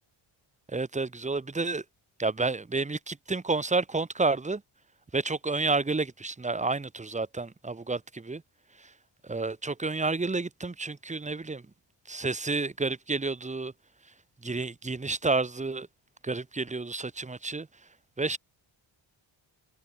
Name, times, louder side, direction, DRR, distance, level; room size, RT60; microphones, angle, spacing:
voice 1, 0.7-1.8 2.2-4.6 5.1-8.4 8.8-8.9 9.2-11.7 12.1-13.7 14.4-15.9 16.2-17.7 18.2-18.4, right 3 dB, 15° right, 1.1 m, -30 dB
wide cardioid pair, 115°, 50 cm